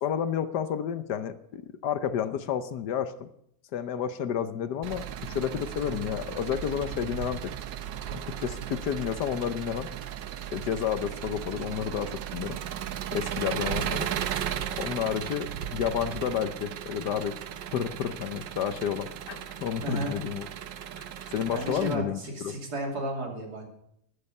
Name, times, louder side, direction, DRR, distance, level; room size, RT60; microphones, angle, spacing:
voice 1, 0.0-3.3 3.7-7.5 8.1-9.9 10.5-12.6 13.1-14.1 14.8-17.3 17.7-20.5 20.9-22.5, left 8 dB, 70° left, 11 dB, 1.4 m, -31 dB
Engine, 4.8-22.0, right 10 dB, 85° right, 1.5 m, -36 dB
voice 2, 19.8-20.2 21.2-23.7, right 1 dB, 60° right, 1 dB, 3.4 m, -33 dB
13.5 x 12.0 x 5.5 m, 0.72 s
omnidirectional pair, 1.9 m